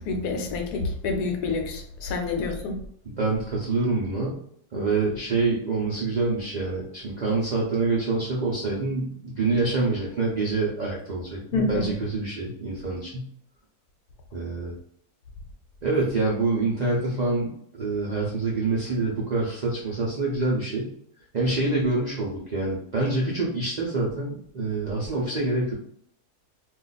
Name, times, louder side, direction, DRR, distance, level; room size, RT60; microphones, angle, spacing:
voice 1, 0.0-2.8 11.5-11.9, left 3 dB, 80° left, 4 dB, 1.2 m, -27 dB
voice 2, 3.0-4.4 4.7-13.3 14.3-14.7 15.8-20.9 21.3-25.7, right 3 dB, 85° right, -4 dB, 0.3 m, -26 dB
2.4 x 2.4 x 3.9 m, 0.66 s
omnidirectional pair, 1.7 m